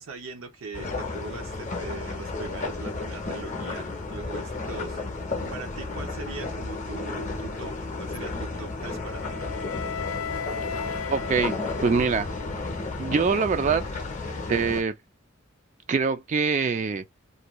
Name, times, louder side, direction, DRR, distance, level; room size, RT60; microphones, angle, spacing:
voice 1, 0.0-9.4, right 4 dB, 70° right, 0.6 m, -41 dB
sound 1, 0.7-14.8, left 3 dB, 35° left, 0.6 m, -33 dB
Wind instrument woodwind instrument, 8.9-12.9, left 6 dB, 80° left, 0.4 m, -36 dB
voice 2, 11.1-11.6 11.8-12.3 13.0-13.8 14.5-14.9 15.9-17.0, right 5 dB, 35° right, 0.3 m, -24 dB
2.6 x 2.2 x 2.9 m
head